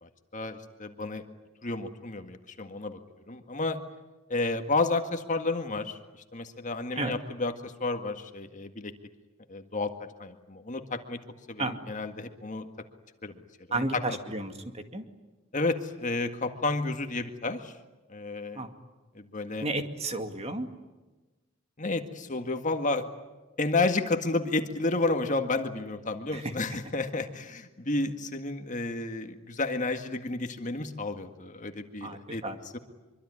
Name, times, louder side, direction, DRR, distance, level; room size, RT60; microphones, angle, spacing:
voice 1, 0.0-1.2 1.6-3.0 3.3-3.8 4.3-6.0 6.3-8.9 9.5-9.9 10.2-11.2 11.5-12.7 13.2-13.4 13.7-14.0 15.5-17.7 18.1-18.7 19.1-19.7 21.8-23.1 23.6-32.4 32.7-32.8, left 3 dB, 40° left, 7 dB, 1.9 m, -31 dB
voice 2, 13.7-15.0 18.5-18.7 19.6-20.7 26.3-26.5 32.0-32.6, right 2 dB, 30° right, 6 dB, 2.3 m, -32 dB
25.0 x 24.5 x 9.8 m, 1.2 s
head